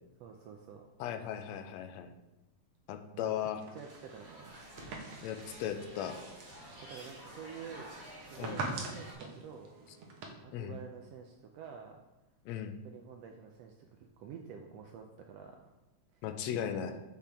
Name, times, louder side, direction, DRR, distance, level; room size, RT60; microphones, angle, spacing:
voice 1, 0.2-0.9 3.1-3.3 3.7-4.7 6.8-7.9 8.2-9.7 10.4-12.0 12.8-15.7 16.1-16.2 16.7-17.0, right 7 dB, 80° right, 3 dB, 1.5 m, -49 dB
voice 2, 1.0-2.1 2.9-3.6 5.2-6.2 8.4-8.6 10.5-10.8 12.4-12.7 16.2-16.9, left 9 dB, 75° left, 7 dB, 1.8 m, -37 dB
sound 1, 3.6-10.3, right 3 dB, 65° right, 2.0 m, -45 dB
sound 2, 3.8-9.1, equal, 10° right, 1.9 m, -52 dB
8.3 x 5.8 x 3.5 m, 0.99 s
omnidirectional pair, 3.4 m